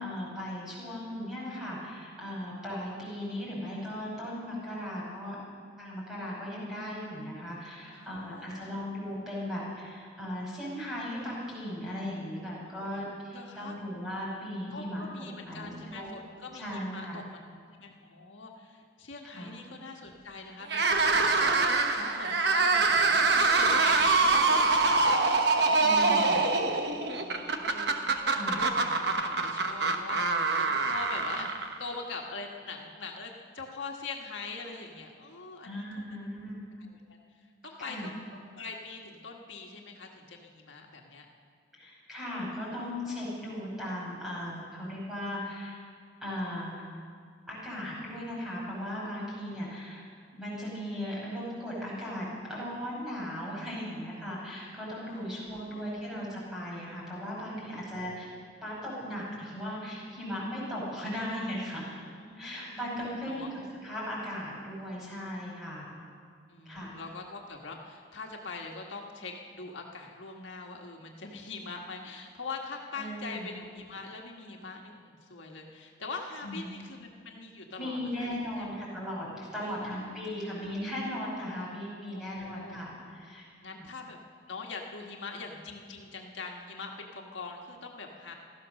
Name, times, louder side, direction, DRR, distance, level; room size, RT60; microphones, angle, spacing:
voice 1, 0.0-5.4 5.8-15.0 15.4-16.1 16.5-17.2 19.2-19.5 25.7-26.4 28.3-28.6 35.6-36.6 37.8-38.1 41.8-45.8 46.2-46.9 47.5-50.0 50.3-58.3 58.6-61.9 62.4-63.5 63.8-65.9 66.7-66.9 72.9-73.6 76.4-76.7 77.8-83.4, equal, 5° right, -6 dB, 5.7 m, -37 dB
voice 2, 7.9-8.8 12.6-13.8 14.7-17.4 17.7-21.5 21.9-28.3 28.6-36.0 36.8-37.2 37.6-38.1 38.5-41.2 55.0-56.0 62.2-62.9 63.2-63.5 65.9-66.0 66.5-78.7 79.6-80.8 82.1-82.8 83.6-84.2 84.5-88.3, left 3 dB, 80° left, 0 dB, 1.6 m, -43 dB
sound 1, 20.6-31.9, right 3 dB, 60° right, 1.1 m, -25 dB
16.5 x 13.5 x 6.5 m, 2.2 s
head